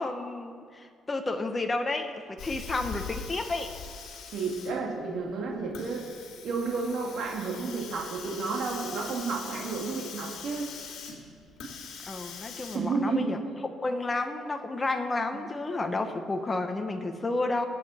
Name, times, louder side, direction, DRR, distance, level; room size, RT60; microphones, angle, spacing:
voice 1, 0.0-3.7 12.1-13.4 13.8-17.7, left 2 dB, 20° left, 5 dB, 1.1 m, -31 dB
Hiss, 2.4-12.8, left 5 dB, 75° left, 2.4 m, -42 dB
voice 2, 4.3-6.1 6.4-10.7 12.7-13.4, right 4 dB, 60° right, -2 dB, 2.5 m, -31 dB
25.0 x 8.3 x 4.4 m, 2.2 s
cardioid pair, 130°, 0 cm